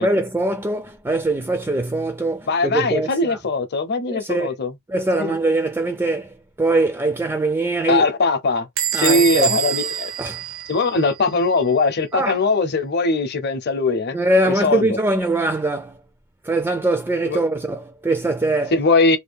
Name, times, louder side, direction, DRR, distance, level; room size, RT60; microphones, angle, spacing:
voice 1, 0.0-3.4 4.1-4.5 4.9-8.1 8.9-9.5 10.2-10.4 12.1-12.4 14.1-16.0 16.4-18.7, right 2 dB, 10° right, 0.3 m, -22 dB
voice 2, 2.5-4.8 5.2-5.4 7.9-8.7 9.0-10.1 10.7-15.0 17.3-17.4 18.7-19.2, left 3 dB, 50° left, 0.7 m, -20 dB
Bell / Squeak, 8.8-11.3, right 10 dB, 60° right, 0.6 m, -25 dB
2.7 x 2.3 x 3.4 m
head